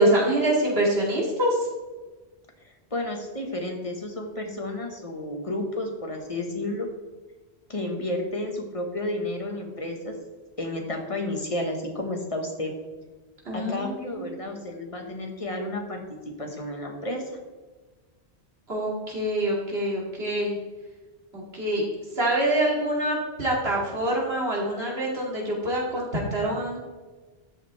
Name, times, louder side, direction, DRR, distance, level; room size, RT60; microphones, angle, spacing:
voice 1, 0.0-1.7 13.4-14.3 18.7-20.5 21.3-21.8 22.2-26.8, right 1 dB, 75° right, -3 dB, 2.8 m, -25 dB
voice 2, 2.9-6.9 7.7-10.1 10.6-12.7 13.5-17.4, left 1 dB, 30° left, 2 dB, 1.6 m, -31 dB
13.0 x 7.6 x 3.4 m, 1.3 s
omnidirectional pair, 1.1 m